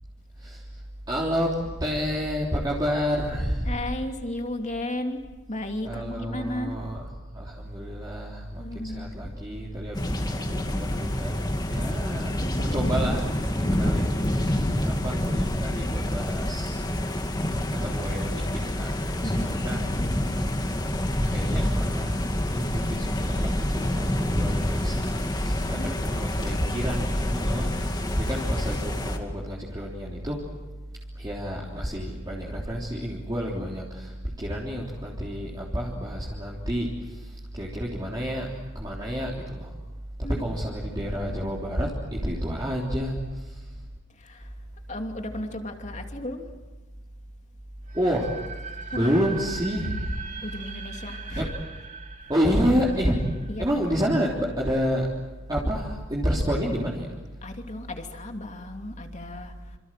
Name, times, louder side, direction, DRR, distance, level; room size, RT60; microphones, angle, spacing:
voice 1, 1.1-3.7 5.8-7.0 7.3-11.3 11.7-12.3 12.6-16.8 17.8-19.8 21.3-22.2 22.5-23.4 23.7-24.1 24.3-30.4 31.2-38.5 38.8-39.7 40.2-43.7 47.9-48.3 48.9-50.2 51.4-51.5 52.3-53.2 53.6-55.1 55.5-57.1, equal, 20° right, -3 dB, 3.5 m, -29 dB
voice 2, 3.6-5.2 5.5-6.9 8.6-9.3 11.7-12.0 12.4-13.3 15.7-16.5 19.2-20.2 25.6-25.9 26.3-26.9 31.7-31.8 40.2-40.4 41.2-41.5 44.1-44.5 44.9-46.4 48.9-49.2 50.4-51.6 53.0-53.2 53.5-53.8 57.4-59.8, left 1 dB, 35° left, 4 dB, 2.9 m, -34 dB
sound 1, 9.9-29.2, left 1 dB, 20° left, 2.4 m, -27 dB
sound 2, 47.9-54.7, right 5 dB, 40° right, 2.6 m, -41 dB
28.0 x 27.0 x 7.7 m, 1.2 s
head